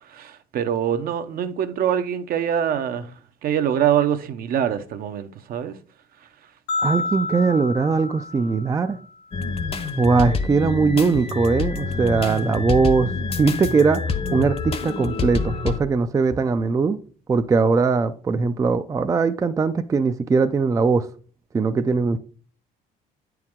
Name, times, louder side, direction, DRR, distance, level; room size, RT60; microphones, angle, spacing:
voice 1, 0.1-3.1 3.4-5.7, right 9 dB, 60° right, 0.7 m, -24 dB
sound 1, 6.7-9.0, left 3 dB, 80° left, 0.8 m, -29 dB
voice 2, 6.8-9.0 10.0-14.0 14.3-17.0 17.3-21.1 21.5-22.2, right 4 dB, 20° right, 0.3 m, -20 dB
sound 2, 9.3-15.8, left 4 dB, 35° left, 0.8 m, -27 dB
8.6 x 4.6 x 3.6 m
cardioid pair, 110°, 17 cm